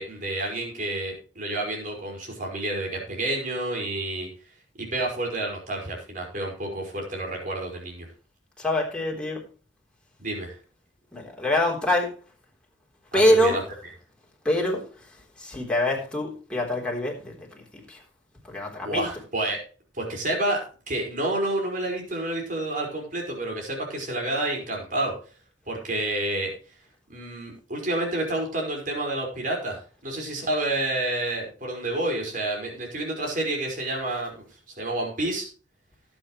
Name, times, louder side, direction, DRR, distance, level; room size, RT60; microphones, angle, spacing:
voice 1, 0.0-4.3 4.8-8.1 10.2-10.6 13.1-13.6 18.8-19.6 19.9-25.1 25.7-26.5 27.1-34.4 34.8-35.5, right 1 dB, 45° right, 5.2 m, -29 dB
voice 2, 8.6-9.5 11.1-12.2 13.1-13.6 14.4-18.0 18.4-19.0, left 1 dB, 5° left, 3.7 m, -25 dB
18.5 x 8.3 x 3.2 m
head